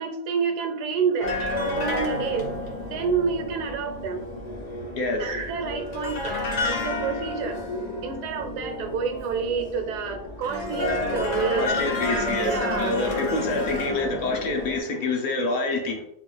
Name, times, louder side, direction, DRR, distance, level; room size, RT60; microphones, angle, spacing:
voice 1, 0.0-4.2 5.2-6.4 6.6-7.6 8.0-11.7 12.1-13.0, right 6 dB, 90° right, 6 dB, 1.2 m, -29 dB
sound 1, 1.2-14.8, left 2 dB, 50° left, 0.5 m, -30 dB
voice 2, 5.0-5.3 11.6-16.1, left 2 dB, 70° left, 3 dB, 1.0 m, -27 dB
3.8 x 2.5 x 3.1 m, 0.79 s
omnidirectional pair, 1.7 m